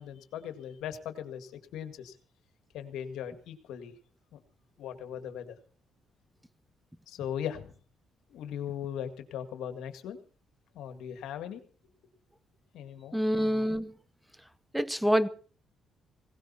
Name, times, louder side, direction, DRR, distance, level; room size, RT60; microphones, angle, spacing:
voice 1, 0.0-2.1 2.7-3.9 4.3-4.4 4.8-5.5 7.1-7.7 8.3-10.2 10.7-11.6 12.7-13.2, left 9 dB, 85° left, 2.0 m, -39 dB
voice 2, 13.1-13.9 14.7-15.3, equal, 5° right, 0.8 m, -26 dB
18.5 x 18.0 x 4.3 m
cardioid pair, 90°, 0 cm